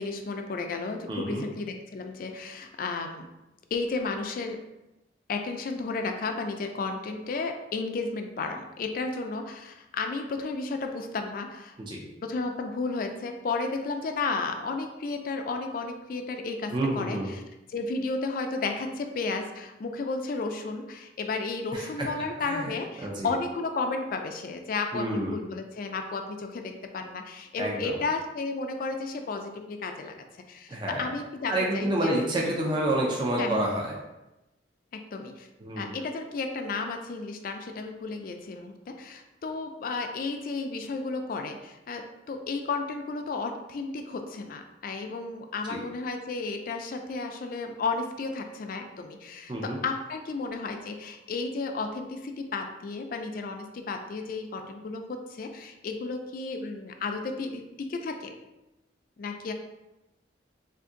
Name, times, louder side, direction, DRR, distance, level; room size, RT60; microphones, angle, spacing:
voice 1, 0.0-3.3 3.7-4.6 5.3-11.7 12.2-17.4 17.7-30.1 30.5-32.1 33.4-33.7 34.9-35.5 35.8-58.3 59.2-59.5, left 3 dB, 50° left, 5 dB, 0.3 m, -33 dB
voice 2, 1.1-1.4 11.8-12.0 16.7-17.3 21.7-22.1 22.4-22.7 23.0-23.3 24.9-25.4 27.6-28.0 30.7-31.1 31.5-33.9 35.6-35.9 45.7-45.8 49.5-49.8, right 1 dB, 25° right, -2 dB, 0.4 m, -29 dB
2.5 x 2.5 x 3.7 m, 0.98 s
head